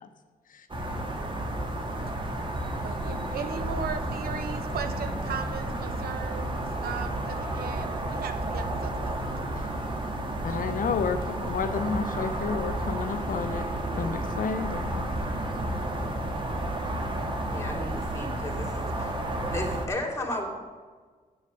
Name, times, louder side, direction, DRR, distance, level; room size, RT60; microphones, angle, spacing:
sound 1, 0.7-19.9, right 1 dB, 30° right, 1.7 m, -31 dB
voice 1, 2.8-9.2, right 6 dB, 75° right, 9 dB, 0.8 m, -37 dB
voice 2, 10.4-13.6 14.0-15.1, left 6 dB, 60° left, 9 dB, 0.6 m, -30 dB
voice 3, 17.4-19.2 19.5-20.5, left 1 dB, 15° left, 2 dB, 2.8 m, -34 dB
7.8 x 7.3 x 7.6 m, 1.5 s
cardioid pair, 60°, 16 cm